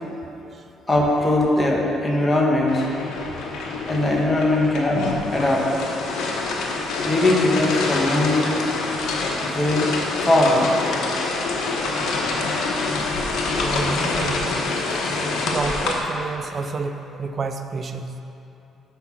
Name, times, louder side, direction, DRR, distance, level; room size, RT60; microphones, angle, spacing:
voice 1, 0.9-2.8 3.9-5.1 5.3-5.7 7.0-8.6 9.4-9.9 10.2-10.7, left 1 dB, 20° left, -2 dB, 1.3 m, -20 dB
sound 1, 2.7-15.9, left 3 dB, 75° left, 1.0 m, -26 dB
voice 2, 13.5-14.6 14.9-15.0 15.5-18.2, right 4 dB, 40° right, 7 dB, 0.5 m, -30 dB
5.7 x 5.6 x 6.1 m, 2.8 s
cardioid pair, 80°, 0 cm